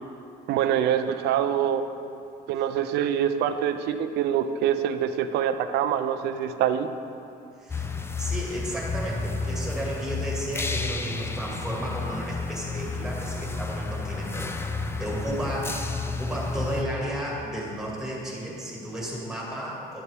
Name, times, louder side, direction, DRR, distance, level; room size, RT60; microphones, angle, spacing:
voice 1, 0.5-1.8 2.5-6.9, right 9 dB, 80° right, 9 dB, 0.5 m, -25 dB
voice 2, 7.6-7.9 8.2-14.7 15.0-20.0, right 1 dB, 5° right, -4 dB, 2.0 m, -33 dB
sound 1, 7.7-16.8, left 3 dB, 15° left, 0.5 m, -31 dB
9.9 x 7.2 x 3.5 m, 2.6 s
cardioid pair, 110°, 17 cm